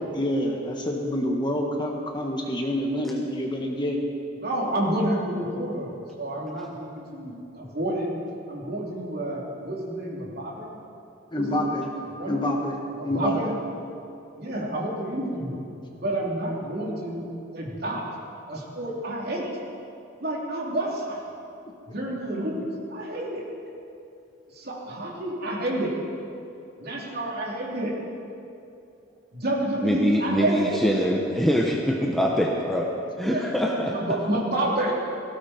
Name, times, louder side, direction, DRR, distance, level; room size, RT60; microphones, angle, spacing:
voice 1, 0.1-4.0 11.3-11.9 12.3-12.8 13.0-13.5, left 1 dB, 25° left, 1 dB, 1.4 m, -27 dB
voice 2, 4.4-8.1 8.5-10.8 11.3-11.9 12.2-12.4 12.9-13.5 14.4-15.6 16.0-17.3 17.5-18.1 18.5-19.5 20.2-21.2 21.9-23.4 24.5-25.9 26.8-27.9 29.3-30.8 33.2-33.4 33.8-34.9, right 1 dB, 50° right, -3 dB, 3.2 m, -29 dB
voice 3, 29.8-32.9 33.2-33.9, equal, ahead, -2 dB, 1.0 m, -24 dB
18.5 x 16.5 x 4.4 m, 2.6 s
head